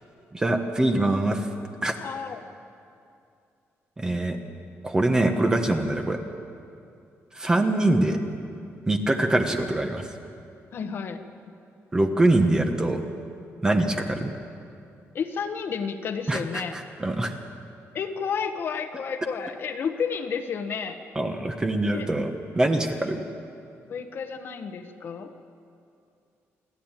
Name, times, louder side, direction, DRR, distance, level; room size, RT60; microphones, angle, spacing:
voice 1, 0.3-1.5 1.8-1.9 4.0-4.4 4.8-6.2 7.3-8.2 8.9-10.1 11.9-13.0 13.6-14.3 16.3-17.3 21.1-23.2, right 2 dB, 15° right, 5 dB, 1.3 m, -24 dB
voice 2, 2.0-2.4 10.7-11.2 15.1-16.7 17.9-21.0 21.9-22.1 23.0-23.1 23.9-25.3, left 6 dB, 45° left, 6 dB, 1.3 m, -31 dB
28.5 x 12.0 x 9.1 m, 2.5 s
cardioid pair, 170°, 5 cm